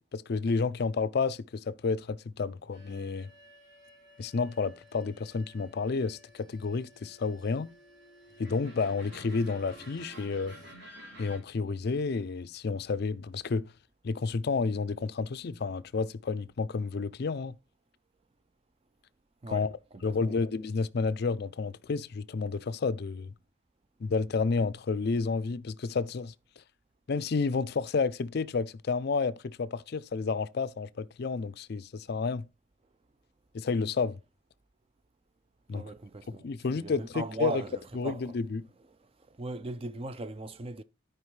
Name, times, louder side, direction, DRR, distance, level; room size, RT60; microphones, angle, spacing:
voice 1, 0.1-3.3 4.2-7.7 8.4-10.6 11.2-13.7 14.0-17.6 19.5-19.7 20.0-23.3 24.0-26.3 27.1-32.5 33.5-34.2 35.7-35.8 36.4-37.6 37.9-38.7, left 4 dB, 50° left, 0.4 m, -30 dB
sound 1, 2.7-11.4, equal, 55° right, 3.6 m, -52 dB
voice 2, 19.9-20.4 35.7-36.5 36.8-38.4 39.0-40.8, right 2 dB, 25° right, 0.4 m, -39 dB
13.0 x 4.8 x 3.2 m
head